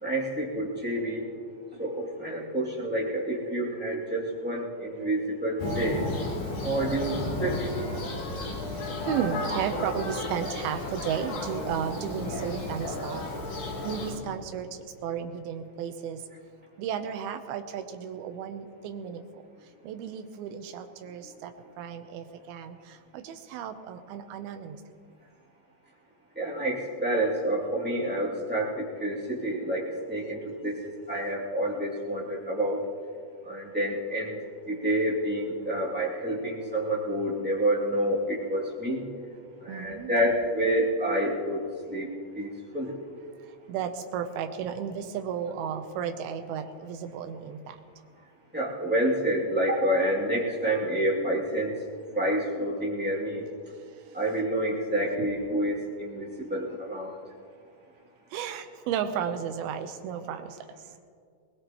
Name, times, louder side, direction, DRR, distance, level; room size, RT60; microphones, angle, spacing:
voice 1, 0.0-1.2 1.8-6.0 6.6-7.7 26.3-32.8 33.4-34.4 34.6-39.1 39.6-41.6 41.9-42.9 48.5-51.7 52.1-53.4 54.1-57.2, right 1 dB, 5° right, -6 dB, 1.0 m, -28 dB
Thunder, 5.6-14.1, left 2 dB, 60° left, 4.6 m, -33 dB
voice 2, 9.0-13.2 13.8-14.7 15.0-16.2 16.8-19.4 19.8-21.5 21.8-22.8 23.1-24.8 39.7-40.1 43.7-47.8 58.3-60.6, right 8 dB, 80° right, 7 dB, 2.2 m, -33 dB
21.0 x 20.5 x 3.0 m, 2.2 s
omnidirectional pair, 5.3 m